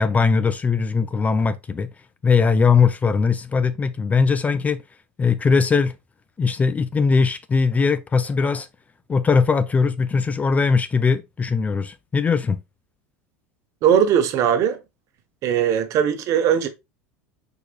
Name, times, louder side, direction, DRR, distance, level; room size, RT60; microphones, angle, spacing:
voice 1, 0.0-1.9 2.2-4.8 5.2-5.9 6.4-8.7 9.1-12.6, left 5 dB, 20° left, 0.4 m, -20 dB
voice 2, 13.8-14.8 15.4-16.7, right 8 dB, 45° right, 0.9 m, -19 dB
4.7 x 4.7 x 2.4 m
figure-of-eight pair, 75°, 8 cm